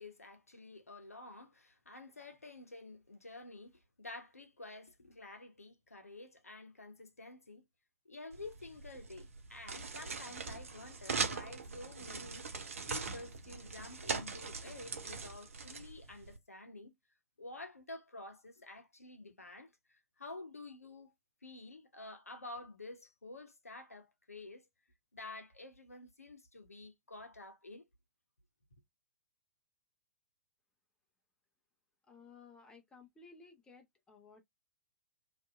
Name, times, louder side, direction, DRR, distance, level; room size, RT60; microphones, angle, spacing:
voice 1, 0.0-7.6 8.0-12.5 12.9-16.9 17.4-21.1 21.4-24.6 25.1-27.8, left 2 dB, 80° left, 0.8 m, -50 dB
sound 1, 8.3-16.4, right 4 dB, 65° right, 0.6 m, -41 dB
voice 2, 32.1-34.4, left 4 dB, 10° left, 0.7 m, -57 dB
2.7 x 2.5 x 2.3 m
figure-of-eight pair, 110°, 8 cm